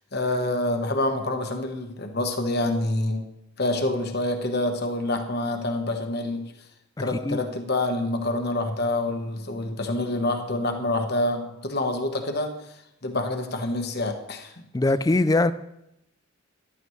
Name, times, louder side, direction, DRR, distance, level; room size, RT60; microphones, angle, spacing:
voice 1, 0.1-3.3 3.6-6.5 7.0-12.6 13.0-14.6, left 2 dB, 50° left, 1.1 m, -27 dB
voice 2, 14.7-15.5, left 2 dB, 15° left, 0.3 m, -21 dB
14.5 x 11.0 x 3.2 m
head